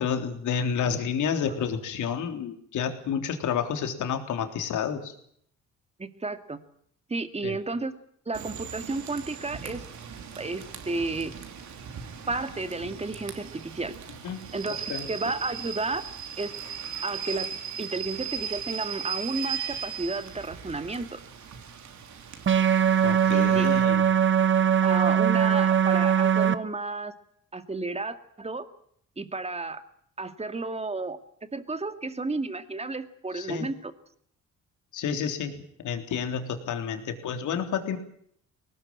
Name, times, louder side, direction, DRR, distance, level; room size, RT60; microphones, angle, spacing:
voice 1, 0.0-5.1 7.4-7.6 14.2-15.1 23.0-24.0 33.3-33.7 34.9-38.0, left 7 dB, 80° left, 6 dB, 3.7 m, -30 dB
voice 2, 6.0-6.6 7.1-7.9 8.3-9.9 10.4-11.3 12.3-13.9 14.5-16.0 16.4-16.5 17.0-17.5 17.8-21.2 23.3-23.7 24.8-27.1 27.5-28.7 29.2-29.8 30.2-31.2 31.5-33.9, right 3 dB, 20° right, 9 dB, 2.3 m, -32 dB
Rain / Train, 8.3-23.8, right 8 dB, 70° right, 3.5 m, -38 dB
sound 1, 22.5-26.6, right 8 dB, 40° right, 1.1 m, -21 dB
21.5 x 19.0 x 8.8 m, 0.66 s
cardioid pair, 90°, 30 cm